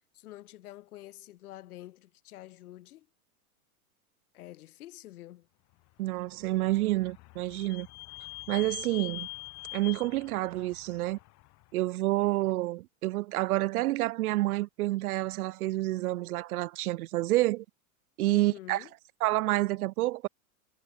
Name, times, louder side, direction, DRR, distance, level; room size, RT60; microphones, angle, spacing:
voice 1, 0.1-3.1 4.3-5.5 18.3-18.9, left 15 dB, 85° left, 1.3 m, -48 dB
voice 2, 6.0-7.9 8.5-9.3 9.7-11.2 11.7-17.6 18.2-18.8 19.2-20.3, right 17 dB, 80° right, 0.7 m, -28 dB
Vehicle / Squeak, 6.1-11.7, left 21 dB, 40° left, 1.7 m, -44 dB
supercardioid pair, 135°, 43 cm